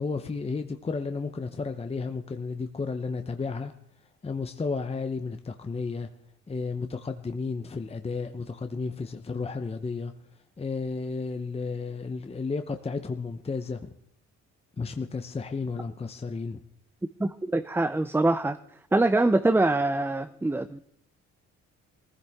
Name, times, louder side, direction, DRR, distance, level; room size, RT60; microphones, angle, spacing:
voice 1, 0.0-3.7 4.2-6.1 6.5-10.1 10.6-13.8 14.8-16.6, left 4 dB, 20° left, 7 dB, 0.8 m, -32 dB
voice 2, 17.2-18.6 18.9-20.8, right 2 dB, 10° right, 11 dB, 0.5 m, -24 dB
21.0 x 15.0 x 3.6 m, 0.66 s
cardioid pair, 90°, 30 cm